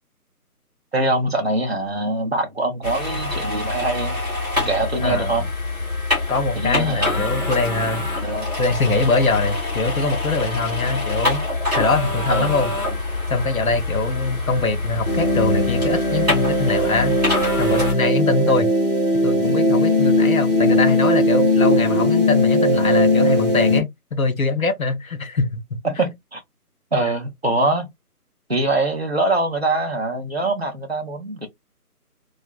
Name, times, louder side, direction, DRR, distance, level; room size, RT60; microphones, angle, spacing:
voice 1, 0.9-4.2 4.6-5.5 6.5-7.3 8.2-8.6 12.3-12.5 18.4-18.5 25.8-26.4 26.9-27.9 28.5-31.5, right 2 dB, 45° right, 0.5 m, -23 dB
sound 1, 2.8-17.9, left 2 dB, 25° right, 1.5 m, -25 dB
voice 2, 5.0-5.3 6.3-8.1 8.6-11.4 11.8-12.7 13.3-17.2 17.6-18.7 19.2-25.8, left 3 dB, 60° left, 0.6 m, -23 dB
sound 2, 15.1-23.8, left 1 dB, 35° left, 0.9 m, -19 dB
2.8 x 2.4 x 2.2 m
figure-of-eight pair, 180°, 47 cm